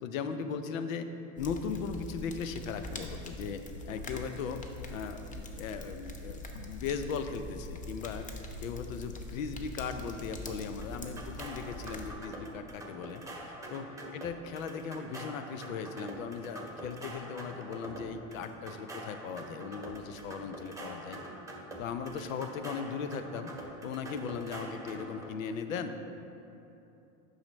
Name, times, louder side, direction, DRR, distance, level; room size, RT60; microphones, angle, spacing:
voice 1, 0.0-1.1 1.4-8.3 8.6-21.2 21.8-23.5 23.8-26.1, left 6 dB, 75° left, 9 dB, 0.6 m, -38 dB
sound 1, 1.4-12.1, left 2 dB, 20° left, 0.6 m, -43 dB
sound 2, 10.5-25.3, right 1 dB, 10° right, 1.1 m, -45 dB
8.5 x 5.6 x 3.1 m, 2.9 s
hypercardioid pair, 85°, 40 cm